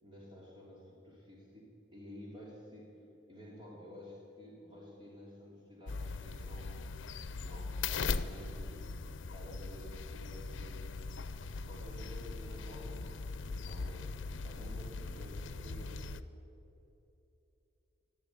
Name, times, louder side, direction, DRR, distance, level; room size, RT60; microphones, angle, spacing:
voice 1, 0.0-1.6 1.9-2.9 3.3-6.9 7.3-8.8 9.3-10.9 11.7-16.0, equal, 25° right, -4 dB, 2.8 m, -51 dB
sound 1, 5.9-16.2, left 4 dB, 90° left, 0.6 m, -40 dB
13.5 x 12.0 x 8.8 m, 3.0 s
head